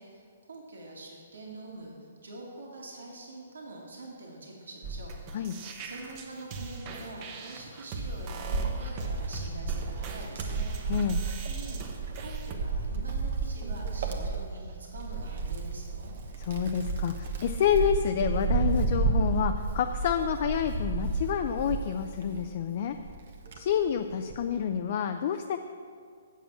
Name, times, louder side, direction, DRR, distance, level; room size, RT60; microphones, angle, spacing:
voice 1, 0.0-2.0 2.2-11.8 12.2-16.1, right 2 dB, 85° right, -2 dB, 2.0 m, -45 dB
sound 1, 4.8-12.6, right 3 dB, 35° right, 1.0 m, -40 dB
Wind, 8.4-22.5 23.0-24.5, right 4 dB, 60° right, 1.1 m, -32 dB
voice 2, 10.9-11.2 16.4-23.0 23.6-25.6, left 8 dB, 50° left, 7 dB, 0.4 m, -28 dB
7.3 x 7.0 x 7.1 m, 2.2 s
hypercardioid pair, 145°, 0 cm